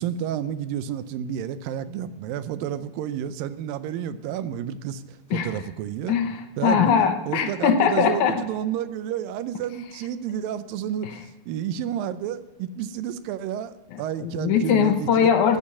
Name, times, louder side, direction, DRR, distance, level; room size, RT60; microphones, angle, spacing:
voice 1, 0.0-6.2 6.6-6.9 7.3-15.3, right 10 dB, 85° right, 13 dB, 2.4 m, -30 dB
voice 2, 6.1-8.4 14.2-15.6, left 7 dB, 70° left, 7 dB, 2.2 m, -21 dB
15.0 x 9.5 x 5.5 m, 1.1 s
omnidirectional pair, 4.0 m